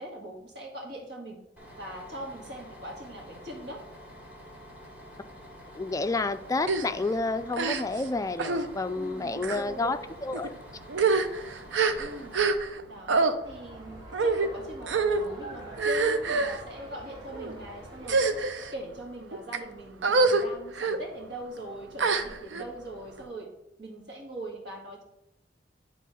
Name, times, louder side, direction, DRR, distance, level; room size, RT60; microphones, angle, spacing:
voice 1, 0.0-1.4 1.8-3.8 9.0-10.0 12.0-12.3 12.9-18.4 18.7-23.5 23.8-25.0, equal, 65° right, 0 dB, 1.8 m, -41 dB
Bus, 1.6-12.5, equal, 10° right, 2.0 m, -48 dB
voice 2, 5.7-10.5, left 3 dB, 20° left, 11 dB, 0.3 m, -30 dB
sound 1, 6.6-6.9 7.5-8.1 8.4-8.7 9.4-9.6 10.3-10.5 10.9-12.8 13.1-13.3 14.1-14.5 14.9-15.2 15.8-16.6 17.3-17.5 18.0-18.7 19.3-19.6 20.0-20.4 20.7-21.0 22.0-22.6, right 4 dB, 85° right, 0.6 m, -26 dB
sound 2, 13.4-18.4, right 1 dB, 30° right, 2.6 m, -46 dB
9.4 x 3.6 x 5.4 m, 0.86 s
head